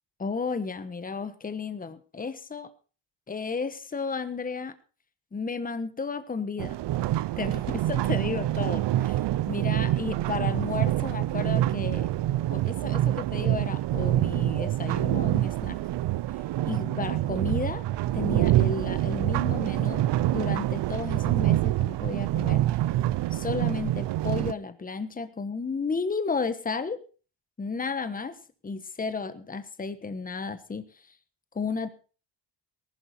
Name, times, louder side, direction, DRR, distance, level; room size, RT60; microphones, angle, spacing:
voice 1, 0.2-2.7 3.3-4.7 5.3-6.8 7.4-9.2 9.5-12.1 12.5-15.8 16.7-17.8 18.1-20.0 20.3-22.6 23.3-27.0 27.6-28.3 28.6-30.8 31.5-31.9, left 4 dB, 20° left, 12 dB, 1.2 m, -33 dB
sound 1, 6.6-24.5, right 14 dB, 70° right, 0.7 m, -26 dB
19.0 x 11.5 x 4.3 m, 0.37 s
cardioid pair, 145°, 44 cm